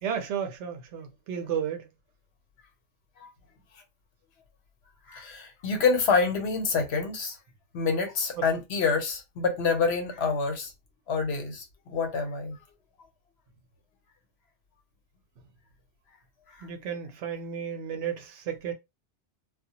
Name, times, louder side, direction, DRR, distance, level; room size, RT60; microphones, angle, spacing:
voice 1, 0.0-1.9 8.4-8.5 16.6-18.7, right 8 dB, 85° right, 0.9 m, -33 dB
voice 2, 5.1-7.4 7.7-10.7 11.1-12.6 16.5-16.7, left 4 dB, 70° left, 1.0 m, -27 dB
2.1 x 2.1 x 2.8 m
omnidirectional pair, 1.2 m